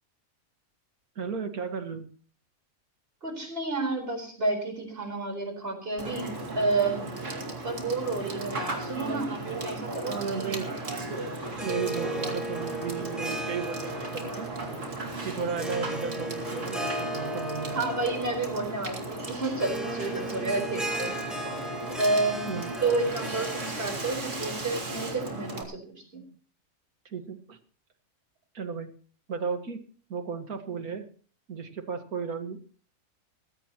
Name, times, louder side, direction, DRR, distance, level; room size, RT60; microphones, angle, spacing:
voice 1, 1.2-2.1 10.0-10.7 11.6-14.5 15.2-17.8 22.5-22.7 27.1-27.6 28.5-28.9 29.3-29.8 30.1-31.1 31.5-32.6, right 5 dB, 80° right, 7 dB, 2.2 m, -34 dB
voice 2, 3.2-7.1 7.6-10.6 17.7-21.5 22.0-26.2, right 3 dB, 40° right, 4 dB, 4.7 m, -30 dB
Water / Water tap faucet / Sink (filling or washing), 6.0-25.6, right 2 dB, 55° right, 2.6 m, -36 dB
Harp, 11.5-25.2, right 1 dB, ahead, 4.4 m, -37 dB
19.5 x 16.0 x 3.0 m, 0.43 s
omnidirectional pair, 1.5 m